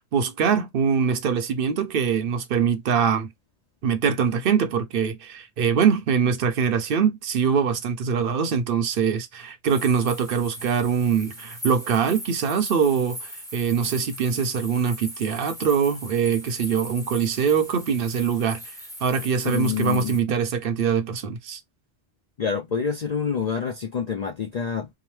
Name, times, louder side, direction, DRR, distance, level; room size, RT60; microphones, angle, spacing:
voice 1, 0.1-3.3 3.8-18.7 19.0-21.6, right 7 dB, 60° right, 0.7 m, -23 dB
sound 1, 9.7-20.2, equal, 5° left, 0.6 m, -39 dB
voice 2, 19.4-20.2 22.4-24.9, left 6 dB, 50° left, 0.5 m, -27 dB
2.8 x 2.1 x 3.1 m
omnidirectional pair, 1.2 m